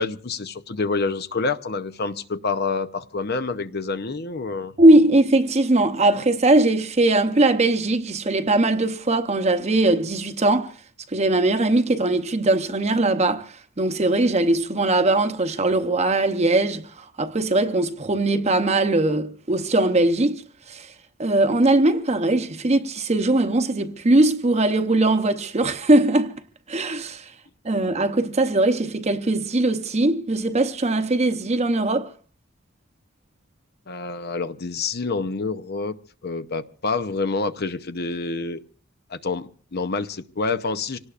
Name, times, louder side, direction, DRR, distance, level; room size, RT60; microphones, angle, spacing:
voice 1, 0.0-4.7 33.9-35.9 36.2-38.6 39.1-41.0, left 4 dB, 50° left, 0.7 m, -27 dB
voice 2, 4.8-10.7 11.1-20.4 20.7-20.9 21.2-26.3 26.7-27.3 27.6-32.1, right 2 dB, 30° right, 0.8 m, -20 dB
26.0 x 18.0 x 2.5 m
head